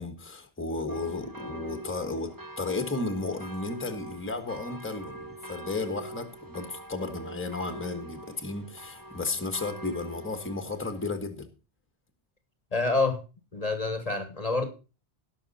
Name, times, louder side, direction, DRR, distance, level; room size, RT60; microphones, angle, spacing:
voice 1, 0.0-11.5, left 3 dB, 10° left, 1.3 m, -34 dB
sound 1, 0.9-11.1, right 1 dB, 20° right, 0.8 m, -44 dB
voice 2, 12.7-13.2 13.5-14.7, left 3 dB, 35° left, 1.4 m, -27 dB
18.0 x 6.2 x 4.1 m
omnidirectional pair, 1.1 m